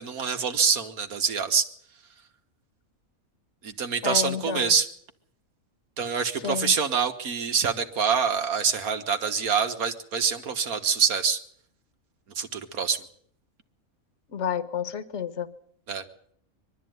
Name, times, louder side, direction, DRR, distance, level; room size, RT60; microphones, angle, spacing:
voice 1, 0.0-1.7 3.6-4.9 6.0-11.4 12.4-13.0 15.9-16.0, right 6 dB, 85° right, 7 dB, 1.9 m, -25 dB
voice 2, 4.0-4.7 6.4-6.7 14.3-15.5, left 7 dB, 55° left, 13 dB, 1.4 m, -30 dB
22.5 x 12.5 x 9.3 m, 0.66 s
omnidirectional pair, 1.5 m